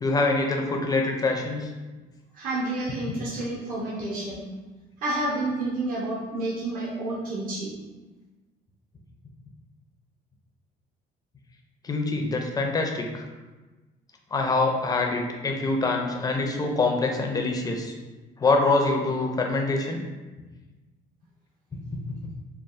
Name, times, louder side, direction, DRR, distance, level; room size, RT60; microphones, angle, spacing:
voice 1, 0.0-1.7 11.8-13.2 14.3-17.9 18.4-20.0, left 3 dB, 20° left, 2 dB, 0.4 m, -25 dB
voice 2, 2.3-4.4 5.0-7.7, right 2 dB, 55° right, -7 dB, 0.7 m, -29 dB
3.3 x 2.3 x 2.4 m, 1.2 s
cardioid pair, 110°, 17 cm